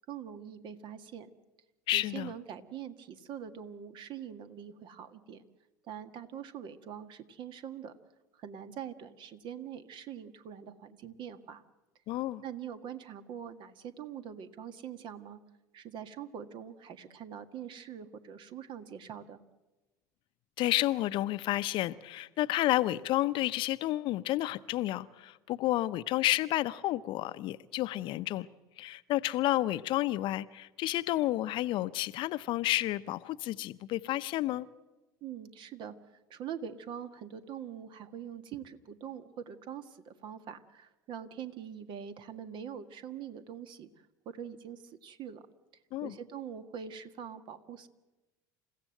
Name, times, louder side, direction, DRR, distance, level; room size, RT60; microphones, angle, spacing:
voice 1, 0.1-1.3 1.9-5.5 5.9-7.9 8.3-11.6 12.4-15.4 15.7-19.4 35.2-45.4 46.0-47.9, right 8 dB, 50° right, 1.7 m, -44 dB
voice 2, 1.9-2.3 12.1-12.4 20.6-28.5 28.8-34.7 45.9-46.1, left 16 dB, 50° left, 0.7 m, -31 dB
29.0 x 15.5 x 7.8 m
figure-of-eight pair, 70°, 10 cm